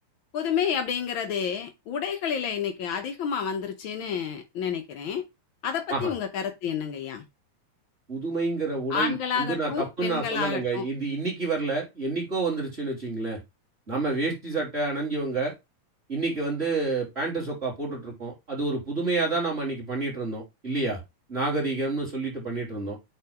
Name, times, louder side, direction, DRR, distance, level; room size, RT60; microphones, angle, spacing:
voice 1, 0.3-5.3 5.6-7.2 8.9-10.9, left 7 dB, 90° left, 1.0 m, -29 dB
voice 2, 8.1-13.4 13.9-15.5 16.1-21.0 21.3-23.0, right 3 dB, 20° right, 3.2 m, -29 dB
8.7 x 3.8 x 3.4 m
omnidirectional pair, 3.4 m